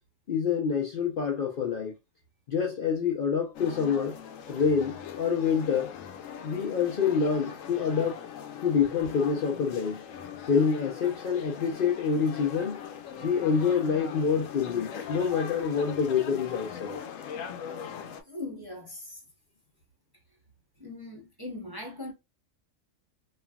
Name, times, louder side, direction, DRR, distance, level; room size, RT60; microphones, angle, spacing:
voice 1, 0.3-1.9 2.5-4.2 4.5-5.9 6.4-8.2 8.6-10.0 10.5-12.8 13.2-17.0, left 6 dB, 55° left, 0.6 m, -27 dB
sound 1, 3.5-18.2, left 8 dB, 85° left, 1.0 m, -41 dB
voice 2, 18.3-19.2 20.8-22.1, left 2 dB, 20° right, 0.7 m, -40 dB
3.2 x 2.4 x 2.2 m
omnidirectional pair, 1.3 m